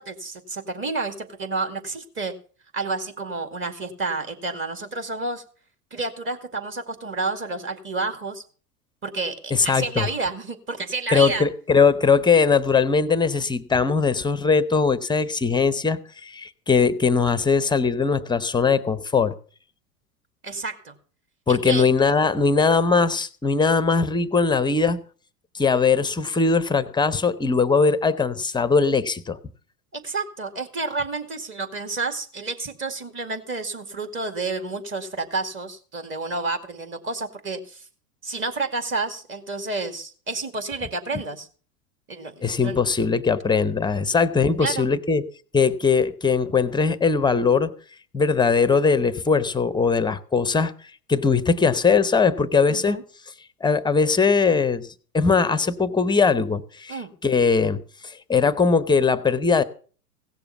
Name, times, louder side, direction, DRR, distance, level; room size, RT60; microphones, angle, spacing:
voice 1, 0.0-2.3 2.7-5.4 5.9-8.4 9.0-11.5 20.4-20.9 21.5-21.9 29.9-37.8 38.2-41.5 42.1-42.8 44.6-44.9 52.7-53.0 56.9-57.1, right 3 dB, 25° right, 7 dB, 2.2 m, -30 dB
voice 2, 9.5-10.1 11.1-19.3 21.5-25.0 25.5-29.4 42.4-45.2 45.5-47.7 48.1-50.7 51.1-53.0 53.6-57.8 58.0-59.6, left 5 dB, 10° left, 16 dB, 0.7 m, -20 dB
16.5 x 6.9 x 7.0 m, 0.42 s
hypercardioid pair, 100°, 47 cm